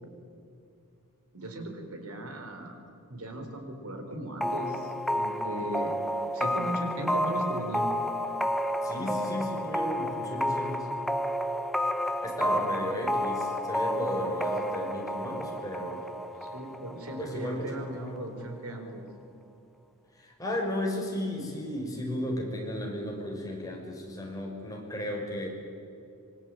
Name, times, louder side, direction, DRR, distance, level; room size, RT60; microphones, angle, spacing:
voice 1, 1.3-2.8 3.1-6.0 6.3-8.0 16.4-19.1, right 1 dB, 75° right, 5 dB, 4.4 m, -37 dB
sound 1, 4.4-17.9, equal, ahead, 0.9 m, -31 dB
voice 2, 8.8-10.9 12.2-16.0 17.2-17.7 17.9-18.1 20.2-25.5, left 1 dB, 15° left, 0 dB, 5.6 m, -34 dB
25.5 x 24.0 x 9.2 m, 2.5 s
head